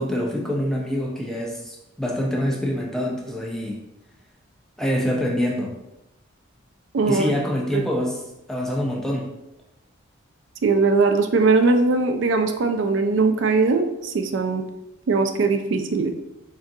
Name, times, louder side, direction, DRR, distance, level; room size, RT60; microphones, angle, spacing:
voice 1, 0.0-3.8 4.8-5.7 7.1-8.2 8.5-9.3, equal, ahead, -2 dB, 0.5 m, -25 dB
voice 2, 6.9-7.4 7.7-7.8 10.6-14.6 15.1-16.1, right 4 dB, 60° right, 6 dB, 0.4 m, -20 dB
3.7 x 3.6 x 2.6 m, 0.91 s
head